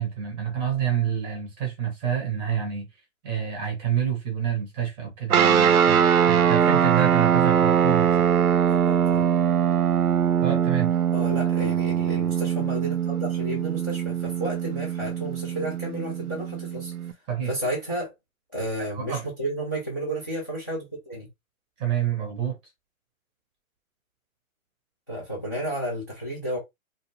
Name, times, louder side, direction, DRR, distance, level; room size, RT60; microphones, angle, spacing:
voice 1, 0.0-2.9 3.2-8.3 10.4-11.0 17.3-17.5 18.8-19.2 21.8-22.6, right 9 dB, 15° right, 0.7 m, -28 dB
sound 1, 5.3-17.1, right 8 dB, 90° right, 0.6 m, -22 dB
voice 2, 8.7-9.3 11.1-16.9 17.4-18.1 18.5-21.3 25.1-26.6, right 1 dB, 15° left, 0.3 m, -32 dB
2.5 x 2.4 x 2.9 m
hypercardioid pair, 140°, 42 cm